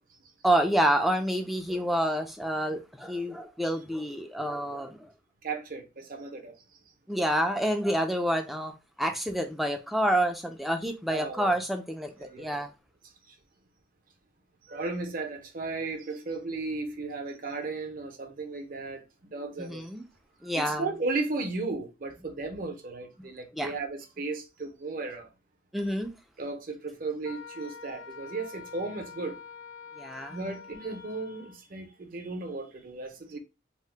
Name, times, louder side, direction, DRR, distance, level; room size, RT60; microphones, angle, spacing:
voice 1, 0.4-5.1 7.1-8.7 9.0-12.7 19.6-20.1 20.4-20.9 23.5-23.7 25.7-26.1 30.0-30.4, right 1 dB, ahead, 0.3 m, -28 dB
voice 2, 5.4-6.5 11.1-11.5 12.2-12.6 13.3-13.4 14.6-19.9 20.6-25.3 26.4-29.4 30.3-33.4, right 3 dB, 45° right, 0.6 m, -35 dB
Wind instrument woodwind instrument, 27.2-31.6, left 6 dB, 85° left, 0.5 m, -46 dB
2.8 x 2.0 x 3.1 m
head